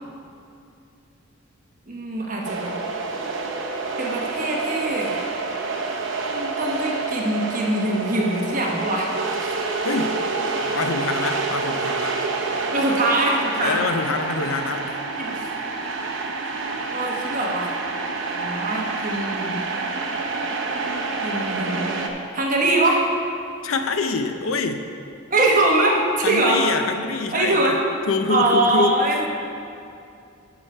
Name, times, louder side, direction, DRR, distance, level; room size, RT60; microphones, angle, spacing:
voice 1, 1.9-2.7 4.0-5.2 6.3-9.1 9.4-9.5 12.7-13.8 15.2-15.5 16.9-17.7 18.3-19.5 21.2-21.9 22.3-23.0 25.3-26.6 27.3-27.8 28.3-29.3, right 2 dB, 40° right, -2 dB, 1.1 m, -22 dB
sound 1, 2.4-22.1, right 3 dB, 65° right, 0.8 m, -28 dB
voice 2, 9.8-10.2 10.6-12.2 13.6-15.0 23.6-24.9 26.2-27.8 28.1-29.0, left 3 dB, 80° left, 8 dB, 0.5 m, -25 dB
12.0 x 5.0 x 4.5 m, 2.6 s
head